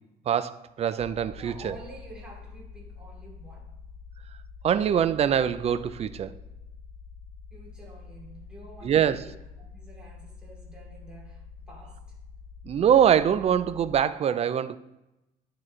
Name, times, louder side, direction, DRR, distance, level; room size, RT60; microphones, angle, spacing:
voice 1, 0.3-1.8 4.6-6.3 8.8-9.3 12.7-14.8, right 9 dB, 40° right, 14 dB, 0.4 m, -23 dB
sound 1, 1.0-13.9, left 5 dB, 20° left, 0.7 m, -46 dB
voice 2, 1.4-3.7 7.5-12.2, right 1 dB, 5° right, -5 dB, 2.7 m, -49 dB
11.0 x 4.0 x 3.2 m, 0.96 s
cardioid pair, 110°, 17 cm